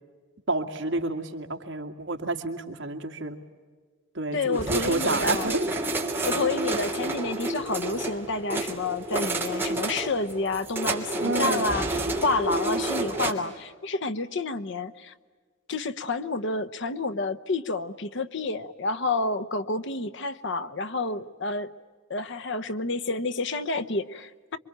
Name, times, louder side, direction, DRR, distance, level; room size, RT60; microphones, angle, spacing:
voice 1, 0.5-3.4 4.1-5.7 11.2-11.6 12.4-12.5, right 2 dB, 65° right, 4 dB, 2.3 m, -29 dB
voice 2, 4.3-5.5 6.2-15.1 15.7-21.7 22.1-24.6, left 3 dB, 65° left, 11 dB, 1.0 m, -29 dB
sound 1, 4.5-13.3, right 2 dB, 10° right, 2.8 m, -29 dB
27.5 x 24.0 x 8.9 m, 1.5 s
head